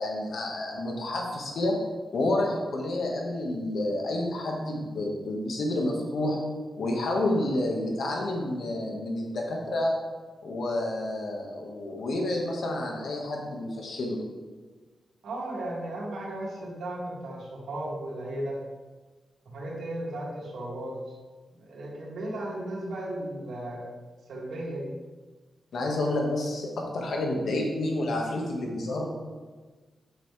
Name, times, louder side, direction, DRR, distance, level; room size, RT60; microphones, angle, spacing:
voice 1, 0.0-1.8 2.1-6.4 6.8-10.0 10.4-14.2 25.7-29.1, left 1 dB, 75° left, 0 dB, 1.7 m, -29 dB
voice 2, 15.2-18.6 19.5-21.0 21.5-23.9 24.3-24.9, right 1 dB, 85° right, -4 dB, 2.5 m, -35 dB
8.9 x 7.0 x 3.4 m, 1.3 s
cardioid pair, 70°, 0 cm